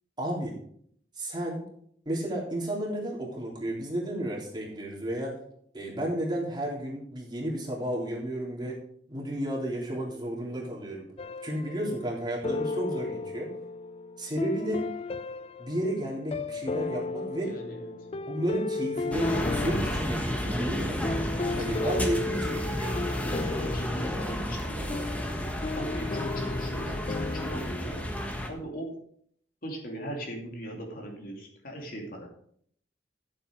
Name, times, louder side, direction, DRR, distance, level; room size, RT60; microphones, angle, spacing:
voice 1, 0.2-0.5 1.2-1.6 2.1-5.3 5.7-8.7 9.1-11.1 11.4-13.5 14.2-14.8 15.6-17.5 18.3-21.0 21.6-23.0, right 1 dB, 25° right, -4 dB, 3.6 m, -32 dB
sound 1, 11.2-12.1 12.4-27.8, left 3 dB, 30° left, 0.4 m, -35 dB
voice 2, 17.4-18.0 21.4-22.2 23.1-25.0 25.8-28.1 28.5-28.9 29.6-32.3, right 1 dB, 50° left, 0 dB, 2.8 m, -39 dB
sound 2, 19.1-28.5, equal, 10° left, 1.3 m, -32 dB
13.5 x 7.8 x 4.7 m, 0.64 s
head